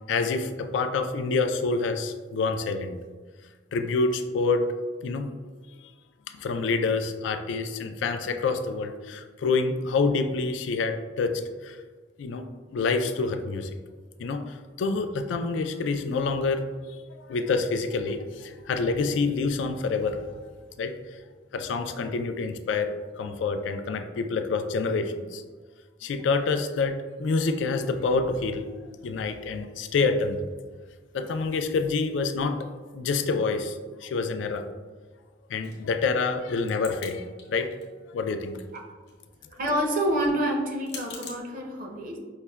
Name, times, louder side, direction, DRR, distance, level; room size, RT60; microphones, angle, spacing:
voice 1, 0.1-2.9 3.7-4.7 5.0-5.3 5.8-5.9 6.4-11.8 12.2-12.4 12.7-13.7 14.2-16.8 17.2-20.3 20.8-20.9 21.5-22.9 23.2-25.4 26.0-28.7 29.0-30.5 31.1-32.7 32.9-34.6 35.5-37.7 38.1-38.6, left 4 dB, 90° left, 7 dB, 0.3 m, -27 dB
sound 1, 35.6-37.1 37.4-38.1 38.4-41.4, left 5 dB, 75° left, 0.8 m, -44 dB
voice 2, 39.6-42.2, right 1 dB, 50° right, 1 dB, 0.5 m, -27 dB
5.5 x 2.1 x 2.2 m, 1.4 s
head